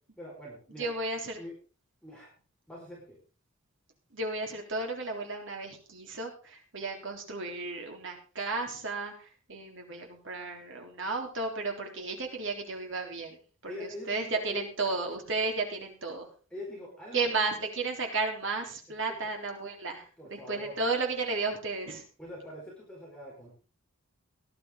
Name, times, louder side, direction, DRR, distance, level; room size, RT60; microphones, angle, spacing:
voice 1, 0.2-0.9 1.4-1.5 2.0-2.3 2.7-3.1 13.6-14.6 16.5-17.4 19.0-19.3 20.2-20.8 22.2-23.5, left 1 dB, 5° left, -4 dB, 4.8 m, -43 dB
voice 2, 0.8-1.4 4.1-13.4 13.6-16.3 17.1-22.0, right 3 dB, 60° right, 2 dB, 3.7 m, -33 dB
18.0 x 11.5 x 3.8 m, 0.36 s
head